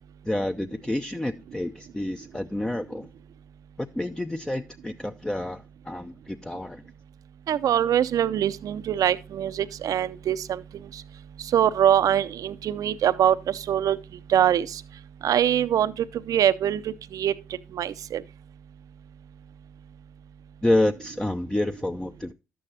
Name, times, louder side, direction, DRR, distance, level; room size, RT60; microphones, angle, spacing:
voice 1, 0.2-3.1 3.8-6.8 20.6-22.3, left 1 dB, 10° left, 0.6 m, -28 dB
voice 2, 7.5-10.6 11.5-14.0 14.3-14.8 15.2-17.3 17.7-18.2, right 10 dB, 60° right, 0.6 m, -23 dB
11.5 x 8.5 x 2.8 m
hypercardioid pair, 45°, 7 cm